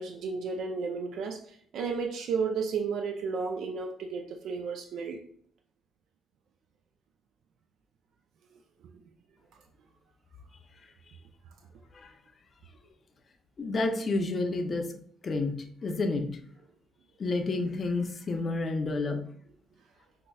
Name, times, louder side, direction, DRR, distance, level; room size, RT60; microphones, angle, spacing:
voice 1, 0.0-5.2, right 5 dB, 75° right, 4 dB, 0.3 m, -33 dB
voice 2, 13.6-14.9 15.2-15.5 15.8-16.3 17.2-19.2, left 3 dB, 40° left, 5 dB, 0.5 m, -29 dB
5.1 x 2.1 x 2.2 m, 0.62 s
cardioid pair, 90°, 0 cm